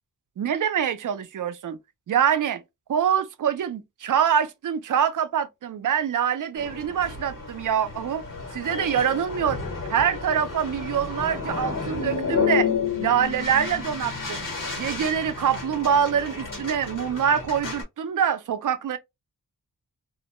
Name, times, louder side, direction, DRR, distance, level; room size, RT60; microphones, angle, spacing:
voice 1, 0.4-1.8 2.1-2.6 2.9-8.2 8.5-9.6 9.9-12.7 13.0-14.5 14.8-19.0, right 8 dB, 60° right, 0.5 m, -25 dB
sound 1, 6.6-17.8, left 5 dB, 65° left, 1.3 m, -31 dB
2.4 x 2.1 x 2.9 m
wide cardioid pair, 145°, 35 cm